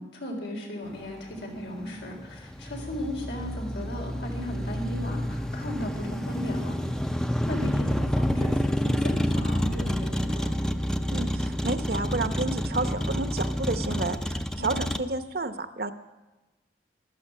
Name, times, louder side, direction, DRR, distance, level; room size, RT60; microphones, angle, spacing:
voice 1, 0.0-6.8 7.4-10.5 14.6-14.9, left 1 dB, 85° left, 1 dB, 4.0 m, -36 dB
Motor vehicle (road), 0.9-15.0, equal, 5° left, 0.5 m, -29 dB
voice 2, 11.1-15.9, right 3 dB, 60° right, 11 dB, 0.9 m, -31 dB
14.5 x 13.0 x 7.4 m, 1.1 s
head